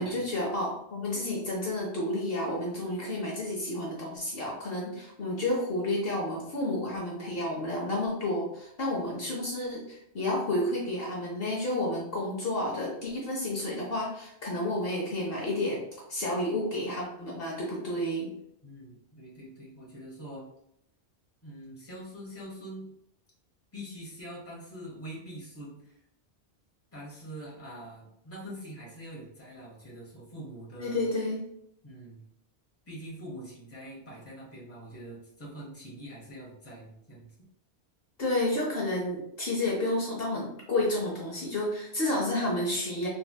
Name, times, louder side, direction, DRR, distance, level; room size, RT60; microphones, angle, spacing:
voice 1, 0.0-15.8 16.1-18.3 30.8-31.4 38.2-43.1, left 1 dB, 60° left, -3 dB, 0.9 m, -31 dB
voice 2, 18.6-20.5 21.4-22.9 23.7-26.0 26.9-31.1 31.8-32.2 32.9-37.3, right 1 dB, 15° left, -5 dB, 1.0 m, -44 dB
3.2 x 2.6 x 2.3 m, 0.74 s
omnidirectional pair, 1.1 m